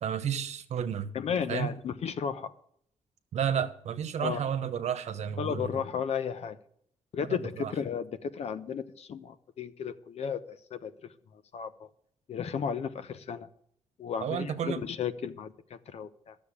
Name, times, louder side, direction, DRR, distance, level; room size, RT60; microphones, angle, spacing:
voice 1, 0.0-1.1 1.5-1.7 3.3-5.7 7.3-7.7 14.2-14.8, right 8 dB, 70° right, 10 dB, 1.2 m, -31 dB
voice 2, 1.1-2.5 4.2-4.4 5.4-6.6 7.1-10.9 11.5-11.9 12.3-13.5 14.0-16.3, left 7 dB, 60° left, 12 dB, 0.9 m, -34 dB
12.0 x 7.0 x 8.5 m, 0.67 s
cardioid pair, 115°, 12 cm